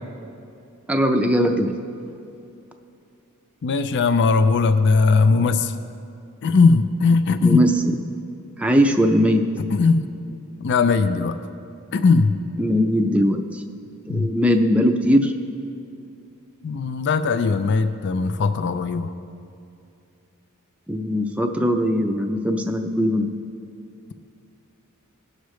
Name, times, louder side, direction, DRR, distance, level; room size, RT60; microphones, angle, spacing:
voice 1, 0.9-1.7 7.4-8.0 8.6-9.4 12.6-13.6 14.1-15.3 20.9-23.3, equal, 5° right, 4 dB, 0.5 m, -20 dB
voice 2, 3.6-5.7 6.4-7.6 9.6-10.1 10.6-11.4 11.9-12.4 14.1-14.3 16.6-19.1, left 4 dB, 55° left, 11 dB, 0.4 m, -19 dB
17.5 x 6.5 x 3.1 m, 2.6 s
head